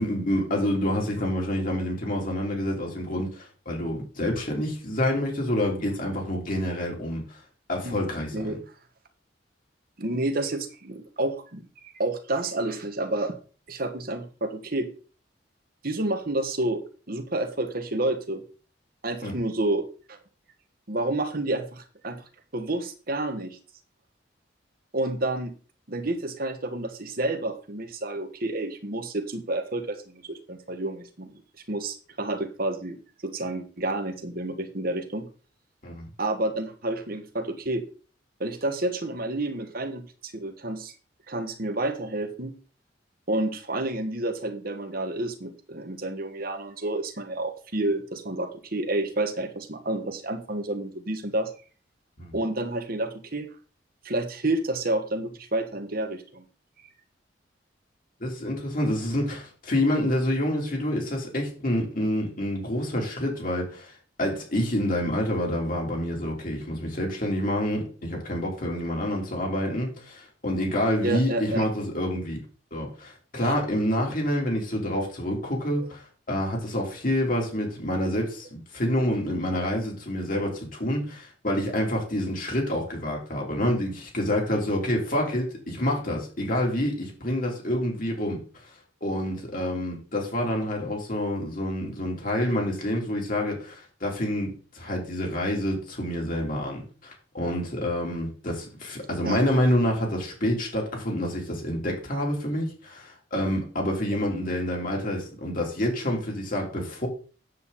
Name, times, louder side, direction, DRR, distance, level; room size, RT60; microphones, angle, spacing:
voice 1, 0.0-7.4 7.7-8.5 19.2-19.3 35.8-36.1 52.2-52.4 58.2-72.4 72.7-88.6 89.0-107.1, left 1 dB, 50° left, 3.8 m, -28 dB
voice 2, 10.0-13.3 13.7-14.9 15.8-16.8 17.1-18.4 19.0-20.2 20.9-22.2 22.5-23.6 24.9-25.5 25.9-31.4 31.7-35.3 36.2-37.8 38.4-40.9 41.3-42.5 43.3-51.5 52.3-53.5 54.0-56.4 71.0-71.7 73.4-73.5 99.2-99.4, right 2 dB, 55° right, 1.6 m, -29 dB
9.6 x 8.1 x 4.2 m
head